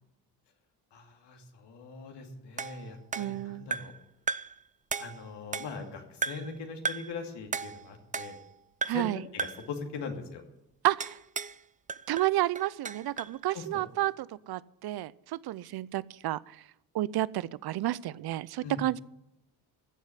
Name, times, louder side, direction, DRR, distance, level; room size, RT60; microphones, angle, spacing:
voice 1, 0.9-3.9 5.0-8.4 8.9-9.1 9.3-10.4 13.5-13.8 18.6-18.8, left 5 dB, 70° left, 3 dB, 2.7 m, -41 dB
sound 1, 2.6-4.0 4.3-4.6 4.9-5.9 6.2-6.6 6.8-7.2 7.5-8.5 8.8-9.1 9.4-9.7 11.0-11.6 11.9-13.4, right 5 dB, 20° right, 0.4 m, -36 dB
voice 2, 3.2-3.7 8.8-9.2 10.8-11.2 12.1-16.6 16.9-19.0, right 15 dB, 60° right, 21 dB, 0.6 m, -31 dB
15.0 x 7.3 x 9.9 m, 0.85 s
supercardioid pair, 60°, 42 cm